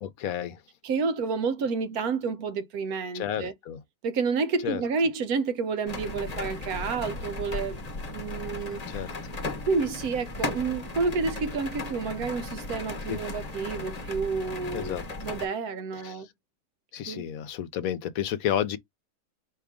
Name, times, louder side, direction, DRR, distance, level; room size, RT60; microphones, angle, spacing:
voice 1, 0.0-0.6 3.1-3.8 4.6-4.8 8.9-9.1 13.1-13.2 14.7-15.1 15.9-16.2 16.9-18.8, left 10 dB, 70° left, 1.0 m, -31 dB
voice 2, 0.8-3.5 4.0-7.8 8.1-8.8 9.7-16.3 17.1-17.3, right 4 dB, 75° right, 1.2 m, -29 dB
sound 1, 5.9-15.5, left 2 dB, 30° left, 0.9 m, -36 dB
4.8 x 2.9 x 3.6 m
omnidirectional pair, 1.7 m